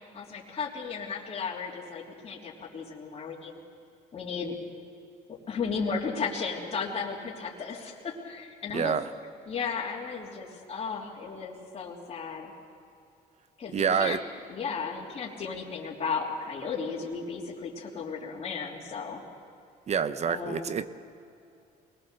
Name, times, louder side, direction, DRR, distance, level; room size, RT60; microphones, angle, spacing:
voice 1, 0.1-3.6 4.1-4.6 5.3-9.0 9.5-12.5 13.6-14.2 14.5-19.2 20.2-20.7, left 5 dB, 35° left, -5 dB, 3.3 m, -35 dB
voice 2, 8.7-9.0 13.7-14.2 19.9-20.9, right 7 dB, 40° right, 13 dB, 0.9 m, -27 dB
24.0 x 20.0 x 6.9 m, 2.6 s
cardioid pair, 110°, 17 cm